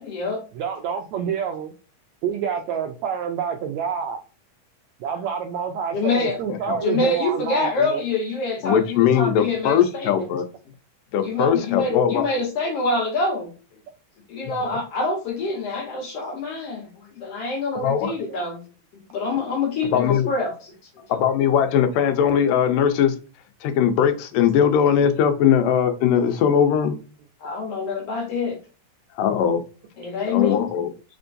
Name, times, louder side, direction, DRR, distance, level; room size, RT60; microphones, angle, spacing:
voice 1, 0.0-0.4 5.9-6.4 6.8-10.3 11.2-13.5 14.3-18.6 18.9-20.7 27.4-28.6 30.0-30.7, left 3 dB, 60° left, 1 dB, 1.8 m, -26 dB
voice 2, 0.6-1.7 2.2-4.2 5.0-8.0 9.4-9.7 10.1-10.3 11.8-12.2 18.3-18.4, right 7 dB, 90° right, 5 dB, 1.6 m, -28 dB
voice 3, 6.5-6.8 8.6-10.5 11.1-12.3 14.5-14.6 17.8-18.1 19.8-20.3 21.1-23.2 23.6-27.0 29.2-29.6 30.3-30.9, left 8 dB, 80° left, 8 dB, 2.3 m, -20 dB
4.5 x 4.4 x 2.6 m, 0.34 s
omnidirectional pair, 3.9 m